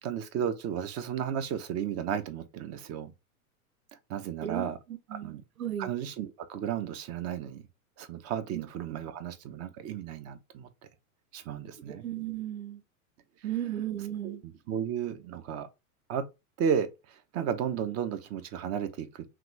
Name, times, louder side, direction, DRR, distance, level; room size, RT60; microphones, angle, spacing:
voice 1, 0.0-3.1 4.1-4.8 5.1-5.4 5.8-7.6 8.0-10.7 11.3-12.0 14.2-15.7 16.1-16.3 16.6-19.2, right 8 dB, 35° right, 0.8 m, -33 dB
voice 2, 4.4-5.9 8.5-8.6 11.9-12.8 13.4-14.4, right 11 dB, 65° right, 1.3 m, -35 dB
5.8 x 2.4 x 3.2 m
hypercardioid pair, 105°, 44 cm